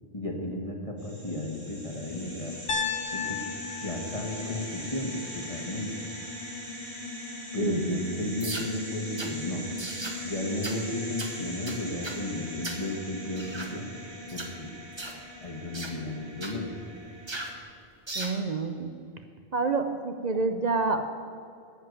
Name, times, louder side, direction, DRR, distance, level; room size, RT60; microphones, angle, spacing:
voice 1, 0.1-2.5 3.1-3.4 3.8-6.1 7.5-9.6 10.2-13.9 14.3-14.7 15.4-16.7, left 1 dB, 30° left, 0 dB, 1.5 m, -34 dB
sound 1, 1.0-17.6, left 1 dB, 85° right, 4.4 m, -40 dB
Piano, 2.7-6.7, left 6 dB, 60° left, 1.0 m, -36 dB
voice 2, 7.6-8.0 18.2-19.0 19.5-21.0, right 3 dB, 45° right, 7 dB, 0.7 m, -28 dB
sound 2, 8.4-8.7 9.2-9.4 9.8-10.2 10.6-10.8 11.2-11.4 11.7-12.2 12.6-12.9 13.4-13.7 14.3-14.5 15.0-15.2 15.7-16.0 16.4-16.6 17.3-17.6 18.1-18.4, right 2 dB, 25° right, 1.1 m, -37 dB
13.0 x 5.8 x 9.4 m, 2.3 s
omnidirectional pair, 1.1 m